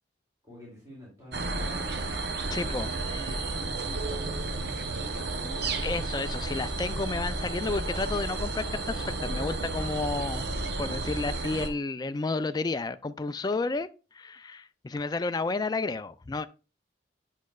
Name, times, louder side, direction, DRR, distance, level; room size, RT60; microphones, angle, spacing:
voice 1, 0.4-5.8, equal, 20° right, 2.5 m, -48 dB
sound 1, 1.3-11.7, right 2 dB, 60° right, 0.8 m, -32 dB
voice 2, 2.5-2.9 5.8-10.5 10.8-13.9 14.1-16.5, left 3 dB, 20° left, 0.3 m, -31 dB
8.5 x 6.3 x 2.3 m
head